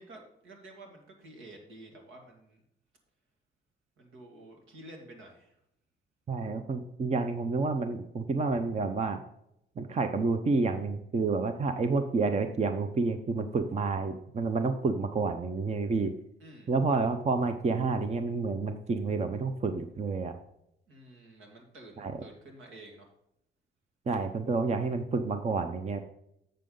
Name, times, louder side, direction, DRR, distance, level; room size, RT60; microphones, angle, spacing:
voice 1, 0.0-2.6 4.0-5.6 16.4-16.7 20.9-23.1, right 1 dB, 80° right, 2 dB, 2.2 m, -50 dB
voice 2, 6.3-9.2 9.8-16.1 16.7-20.4 22.0-22.1 24.1-26.0, right 4 dB, 35° right, 8 dB, 0.7 m, -29 dB
7.7 x 6.8 x 3.8 m, 0.77 s
cardioid pair, 90°, 20 cm